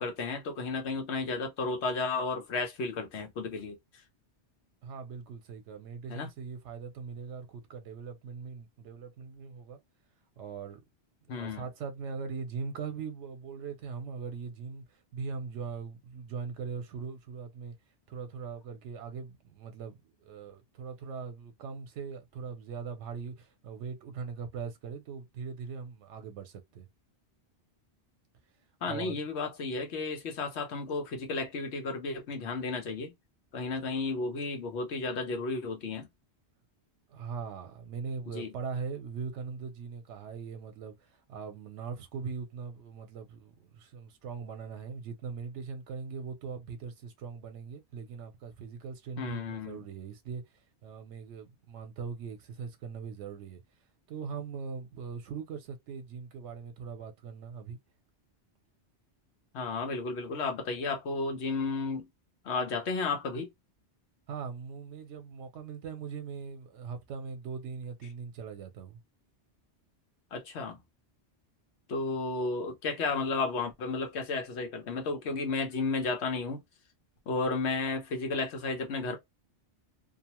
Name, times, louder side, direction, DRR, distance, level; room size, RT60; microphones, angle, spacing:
voice 1, 0.0-3.8 6.1-6.3 11.3-11.7 28.8-33.1 33.5-36.1 38.3-38.5 49.2-49.8 59.5-62.1 62.4-63.5 70.3-70.8 71.9-76.6 77.3-79.2, left 3 dB, 75° left, 1.0 m, -33 dB
voice 2, 4.8-9.8 10.4-10.9 11.2-17.7 18.1-26.9 28.8-29.2 37.1-50.4 50.8-53.6 54.1-57.8 64.3-69.0, right 5 dB, 85° right, 0.9 m, -40 dB
2.7 x 2.0 x 2.9 m
omnidirectional pair, 1.2 m